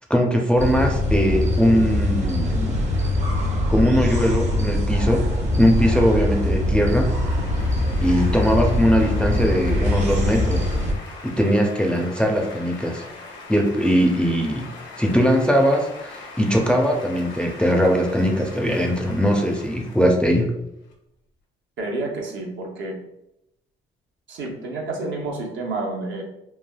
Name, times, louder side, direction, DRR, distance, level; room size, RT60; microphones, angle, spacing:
voice 1, 0.1-2.8 3.7-5.3 5.6-7.1 8.0-10.6 11.2-13.1 13.5-14.7 15.0-20.5, equal, 5° left, 1 dB, 0.4 m, -20 dB
sound 1, 0.6-10.9, left 1 dB, 35° right, 0.7 m, -22 dB
sound 2, 4.2-20.9, left 3 dB, 70° left, 0.7 m, -42 dB
voice 2, 21.8-23.0 24.3-26.2, right 2 dB, 70° right, 0 dB, 0.7 m, -29 dB
3.2 x 2.3 x 2.2 m, 0.85 s
cardioid pair, 90°, 20 cm